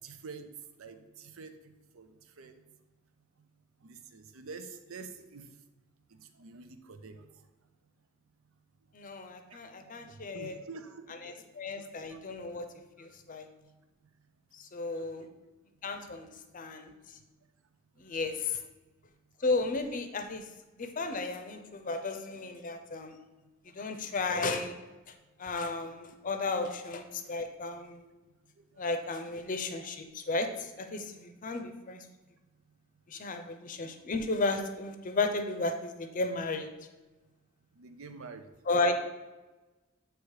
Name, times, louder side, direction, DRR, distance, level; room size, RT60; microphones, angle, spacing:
voice 1, 0.0-0.5 0.8-1.5 1.9-2.1 2.4-2.5 3.8-5.4 6.4-7.2 10.3-11.3 12.1-12.2 15.0-15.1 26.5-26.7 29.8-29.9 37.8-38.4, right 4 dB, 80° right, 9 dB, 0.6 m, -46 dB
voice 2, 8.9-10.5 11.2-12.7 13.0-13.5 14.5-15.2 15.8-16.3 16.5-16.9 18.0-18.6 19.4-20.4 20.8-23.1 23.7-24.8 25.4-28.0 28.8-32.0 33.1-36.7 38.7-38.9, left 3 dB, 40° left, 6 dB, 0.6 m, -33 dB
8.1 x 3.1 x 4.7 m, 1.2 s
head